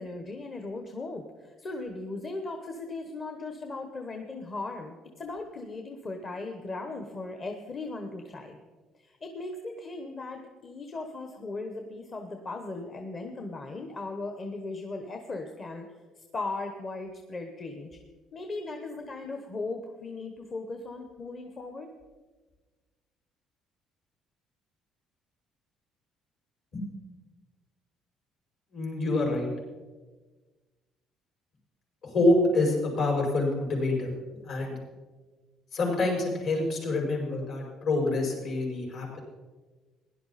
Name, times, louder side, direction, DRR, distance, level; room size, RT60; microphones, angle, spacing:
voice 1, 0.0-8.6 8.9-15.9 16.2-18.0 18.3-21.9, left 3 dB, 30° left, 4 dB, 1.1 m, -38 dB
voice 2, 28.7-29.5 32.0-34.1 34.4-34.8 35.7-39.2, left 2 dB, 60° left, -2 dB, 5.4 m, -26 dB
17.0 x 11.0 x 4.2 m, 1.3 s
cardioid pair, 145°, 0 cm